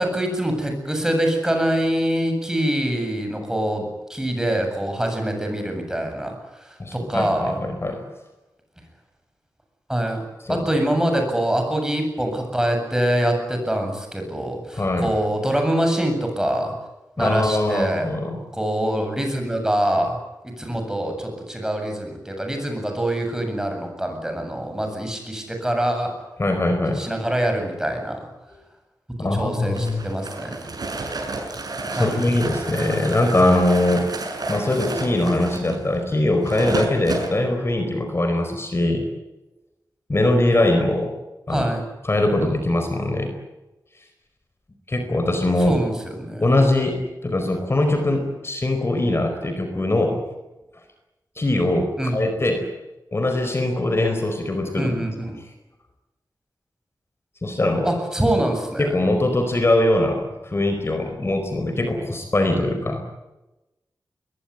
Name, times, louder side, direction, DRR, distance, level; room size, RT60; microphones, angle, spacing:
voice 1, 0.0-7.6 9.9-10.2 10.5-16.7 17.2-18.1 18.5-20.2 20.4-26.1 26.9-28.2 29.2-30.5 32.0-32.2 41.5-41.8 45.6-46.5 52.0-52.2 54.8-55.4 57.8-58.9, right 1 dB, 10° right, 4 dB, 7.8 m, -24 dB
voice 2, 6.8-8.0 10.4-10.6 14.7-15.1 17.2-18.4 26.4-27.1 29.2-30.0 31.9-34.1 34.5-39.0 40.1-41.1 41.5-41.6 42.0-43.3 44.9-45.8 46.4-50.2 51.4-52.7 53.1-54.9 57.4-57.9 58.8-63.0, left 1 dB, 35° left, 6 dB, 4.6 m, -22 dB
sound 1, 29.7-37.3, right 3 dB, 65° right, 6.8 m, -30 dB
23.0 x 22.0 x 9.8 m, 1.0 s
wide cardioid pair, 105°, 7 cm